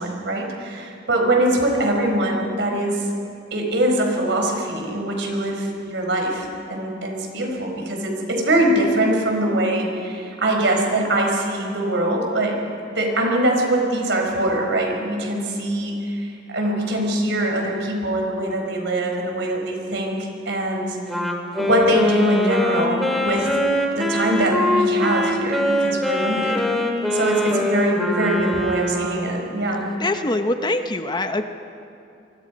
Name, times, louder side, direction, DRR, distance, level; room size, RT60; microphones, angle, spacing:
voice 1, 0.0-3.1 3.5-12.6 12.9-21.0 21.6-23.5 23.9-26.6 27.1-29.8, right 1 dB, 65° right, 1 dB, 4.9 m, -22 dB
Wind instrument woodwind instrument, 21.1-29.4, left 1 dB, ahead, 2.5 m, -23 dB
voice 2, 30.0-31.4, left 2 dB, 25° left, 7 dB, 0.9 m, -23 dB
27.0 x 24.0 x 5.3 m, 2.6 s
head